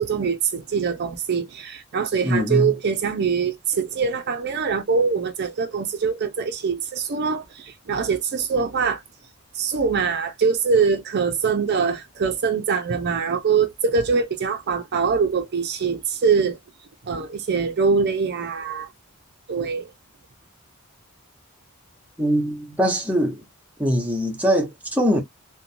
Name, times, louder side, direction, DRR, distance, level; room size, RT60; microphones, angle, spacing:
voice 1, 0.0-9.0 9.5-16.6 17.0-18.9 19.5-19.9, right 5 dB, 55° right, 0.5 m, -23 dB
voice 2, 2.2-2.7 22.2-23.4 23.8-25.2, equal, 5° right, 0.7 m, -22 dB
2.9 x 2.1 x 2.5 m
head